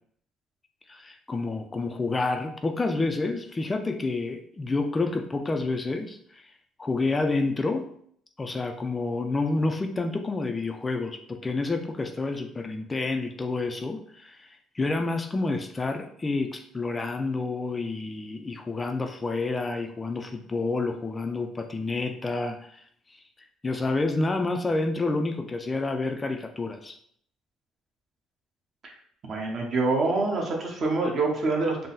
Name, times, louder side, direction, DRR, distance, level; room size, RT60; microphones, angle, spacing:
voice 1, 0.9-6.5 6.8-7.9 8.4-22.8 23.1-27.0, left 3 dB, 20° left, 5 dB, 0.3 m, -29 dB
voice 2, 29.3-31.9, right 3 dB, 45° right, 0 dB, 1.0 m, -26 dB
3.8 x 2.0 x 3.9 m, 0.64 s
cardioid pair, 100°, 0 cm